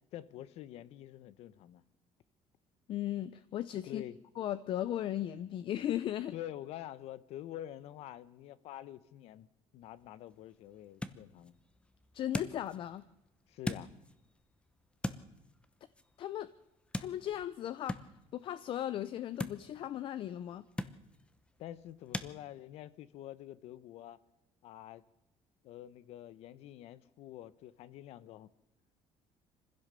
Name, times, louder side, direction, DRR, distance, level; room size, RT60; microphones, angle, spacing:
voice 1, 0.0-1.8 3.9-4.2 6.3-9.5 9.7-11.5 13.5-13.9 21.6-24.2 24.6-25.0 25.6-28.5, left 12 dB, 70° left, 1.0 m, -47 dB
voice 2, 2.9-4.0 4.4-6.3 12.1-13.0 16.2-16.5 17.0-18.0 18.3-20.6, left 12 dB, 50° left, 0.7 m, -36 dB
sound 1, 9.8-22.3, left 2 dB, 10° left, 0.9 m, -44 dB
25.0 x 16.0 x 6.9 m
cardioid pair, 150°, 11 cm